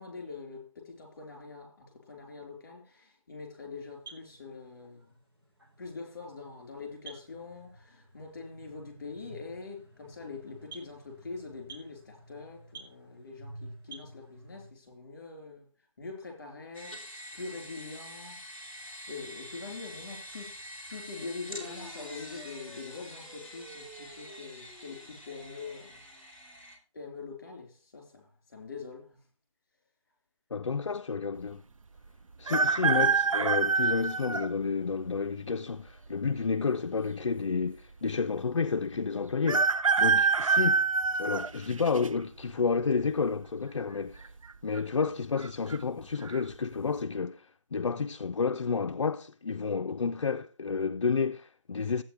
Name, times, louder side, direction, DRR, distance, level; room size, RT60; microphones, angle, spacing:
voice 1, 0.0-5.1 5.8-15.7 16.0-18.4 19.1-20.5 20.9-26.0 26.9-29.2 39.1-39.2, left 4 dB, 35° left, 4.2 m, -44 dB
sound 1, 3.7-14.7, right 2 dB, 45° right, 2.5 m, -51 dB
sound 2, 16.7-26.8, equal, 5° right, 2.5 m, -45 dB
voice 2, 30.5-31.6 32.4-40.8 41.2-44.3 44.6-52.0, left 5 dB, 60° left, 0.6 m, -30 dB
sound 3, 32.5-34.5 35.2-35.3 36.4-37.0 37.3-37.4 37.6-37.7 39.5-42.1 42.6-43.0 44.1-44.5 44.8-44.9 45.4-45.8 46.2-46.4, right 5 dB, 85° right, 0.7 m, -26 dB
13.0 x 8.9 x 3.3 m
figure-of-eight pair, 175°, 17 cm